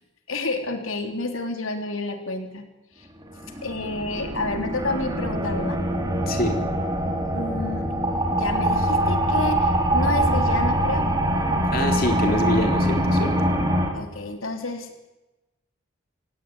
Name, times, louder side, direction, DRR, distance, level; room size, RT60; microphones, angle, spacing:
voice 1, 0.3-2.7 3.0-3.1 3.6-5.8 7.3-7.9 8.3-11.1 13.9-15.1, left 3 dB, 85° left, 5 dB, 3.5 m, -30 dB
sound 1, 3.2-13.9, right 1 dB, 20° right, 4.5 m, -23 dB
voice 2, 6.3-6.6 11.7-13.4, left 1 dB, 45° left, 4 dB, 3.8 m, -25 dB
28.0 x 18.0 x 9.7 m, 1.0 s
head